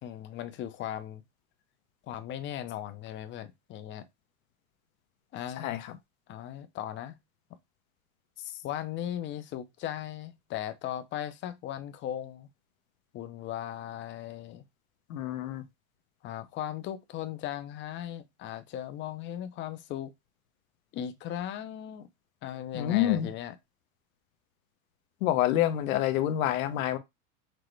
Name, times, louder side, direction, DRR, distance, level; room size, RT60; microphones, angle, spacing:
voice 1, 0.0-1.2 2.1-4.1 5.3-5.7 6.3-7.2 8.6-12.5 13.1-14.6 16.2-20.1 20.9-22.1 22.4-23.6, left 11 dB, 30° left, 0.5 m, -37 dB
voice 2, 5.6-6.0 15.1-15.6 22.7-23.3 25.2-27.0, left 12 dB, 80° left, 0.9 m, -27 dB
6.0 x 2.1 x 3.2 m
supercardioid pair, 135°, 41 cm